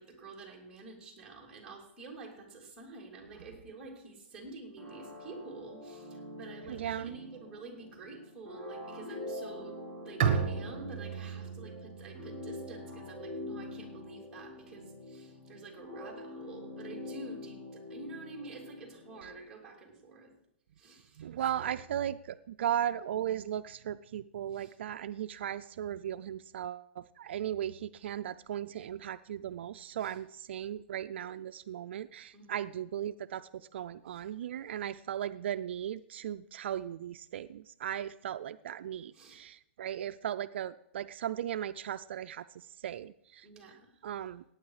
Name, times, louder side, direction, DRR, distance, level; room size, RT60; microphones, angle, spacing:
voice 1, 0.0-20.3 20.8-21.3 21.5-21.7 24.5-24.8 30.0-30.2 32.3-32.7 34.1-34.3 39.1-39.4 43.4-44.3, right 3 dB, 10° right, -3 dB, 3.1 m, -49 dB
sound 1, 4.8-19.3, left 1 dB, 10° left, 2.6 m, -45 dB
voice 2, 6.7-7.2 21.2-43.5 44.0-44.4, right 10 dB, 65° right, 12 dB, 0.4 m, -37 dB
Bowed string instrument, 10.2-13.7, right 7 dB, 40° right, 1.4 m, -34 dB
18.0 x 9.0 x 4.9 m, 0.78 s
hypercardioid pair, 160°, 6 cm